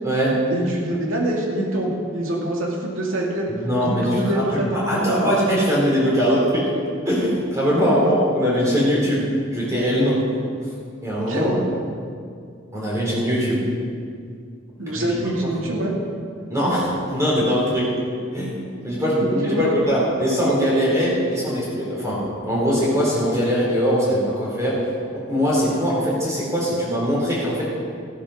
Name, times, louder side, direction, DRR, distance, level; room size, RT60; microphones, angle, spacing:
voice 1, 0.5-3.5 3.8-4.7 4.9-5.3 7.7-8.2 11.3-11.6 14.8-15.9 19.2-19.7, right 1 dB, 80° right, -2 dB, 2.5 m, -25 dB
voice 2, 3.5-6.6 7.1-9.2 9.5-10.2 10.6-10.7 11.0-11.5 12.7-13.6 14.9-15.1 16.5-17.9 18.3-18.6 18.8-22.2 22.4-24.7 25.3-27.7, equal, 15° right, -6 dB, 4.0 m, -21 dB
15.0 x 8.6 x 6.5 m, 2.2 s
head